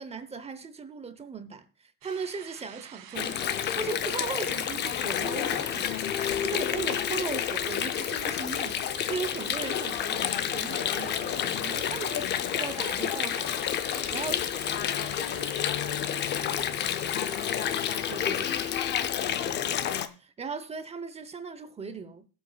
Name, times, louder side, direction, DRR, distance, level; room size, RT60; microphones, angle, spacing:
voice 1, 0.0-6.0 6.4-14.5 18.1-18.7 20.2-22.3, right 5 dB, 15° right, 0.7 m, -38 dB
sound 1, 2.0-18.8, right 11 dB, 55° right, 2.1 m, -48 dB
Water, 3.1-20.1, left 9 dB, 25° left, 0.5 m, -29 dB
voice 2, 13.9-14.5 14.9-17.1, left 7 dB, 85° left, 2.6 m, -46 dB
19.5 x 7.9 x 2.3 m
supercardioid pair, 145°, 48 cm